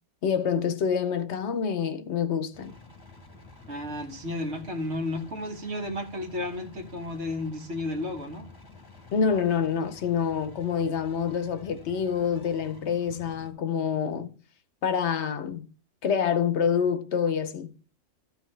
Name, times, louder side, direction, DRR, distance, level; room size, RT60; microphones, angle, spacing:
voice 1, 0.2-2.7 9.1-14.3 14.8-15.7 16.0-17.7, left 7 dB, 70° left, 1.0 m, -27 dB
sound 1, 2.5-13.5, left 3 dB, 20° left, 1.1 m, -50 dB
voice 2, 3.7-8.5, left 2 dB, 65° right, 1.5 m, -33 dB
13.5 x 5.7 x 3.2 m
omnidirectional pair, 1.2 m